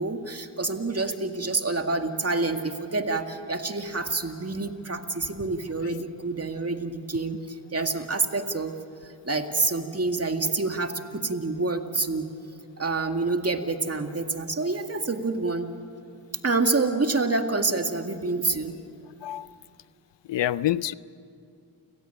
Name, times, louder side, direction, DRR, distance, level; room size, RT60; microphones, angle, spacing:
voice 1, 0.0-8.7 9.0-12.3 12.8-15.7 16.4-18.7, right 3 dB, 35° right, 6 dB, 2.1 m, -27 dB
voice 2, 20.3-20.9, left 13 dB, 80° left, 18 dB, 0.6 m, -26 dB
29.5 x 17.0 x 9.0 m, 2.5 s
cardioid pair, 45°, 42 cm